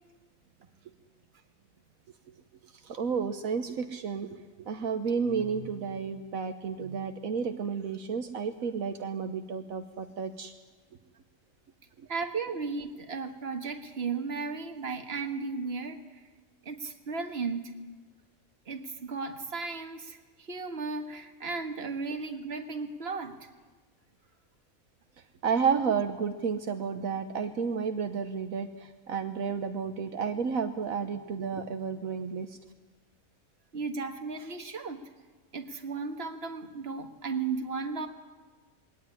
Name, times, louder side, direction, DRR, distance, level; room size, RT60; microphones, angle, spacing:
voice 1, 2.8-10.5 25.4-32.6, right 6 dB, 75° right, 7 dB, 1.4 m, -31 dB
voice 2, 12.1-16.0 16.7-17.7 18.7-23.4 33.7-35.0 35.5-38.1, right 4 dB, 45° right, 5 dB, 1.8 m, -35 dB
21.0 x 17.5 x 9.9 m, 1.3 s
omnidirectional pair, 1.4 m